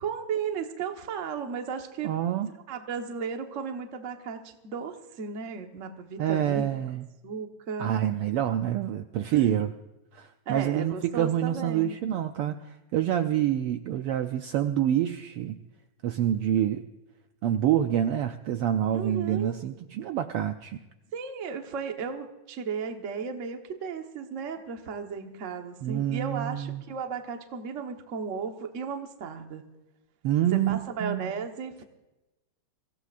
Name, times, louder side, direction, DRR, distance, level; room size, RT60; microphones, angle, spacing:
voice 1, 0.0-2.1 2.7-7.0 7.2-7.9 9.3-9.6 10.5-11.9 18.9-19.6 21.1-29.6 30.5-31.8, right 6 dB, 55° right, 4 dB, 0.8 m, -35 dB
voice 2, 2.0-2.5 6.2-7.0 7.8-9.7 10.1-15.6 16.0-16.8 17.4-20.8 25.8-26.8 30.2-31.3, right 11 dB, 90° right, 7 dB, 1.2 m, -27 dB
24.5 x 16.0 x 2.5 m, 1.0 s
omnidirectional pair, 3.3 m